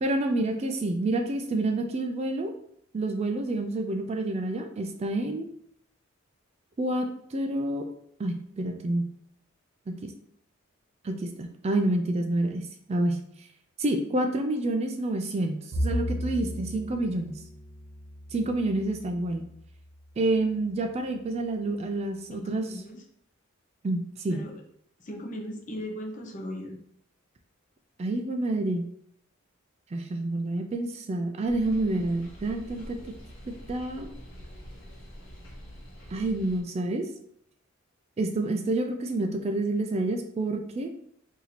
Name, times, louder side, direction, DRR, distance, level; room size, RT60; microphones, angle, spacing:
voice 1, 0.0-2.5 2.9-5.5 6.8-7.9 8.2-9.1 9.9-10.1 11.0-13.5 13.8-17.4 18.3-19.5 20.2-22.7 23.8-24.4 28.0-28.9 29.9-33.1 33.7-34.1 36.1-37.1 38.2-40.9, right 2 dB, 30° right, 5 dB, 0.3 m, -28 dB
Bowed string instrument, 15.7-20.1, equal, 70° right, 0.9 m, -35 dB
voice 2, 22.3-23.0 24.3-24.6 25.0-26.8, equal, 40° left, 1 dB, 0.6 m, -38 dB
sound 1, 31.5-36.6, equal, 65° left, 1.1 m, -45 dB
2.9 x 2.7 x 4.0 m, 0.69 s
head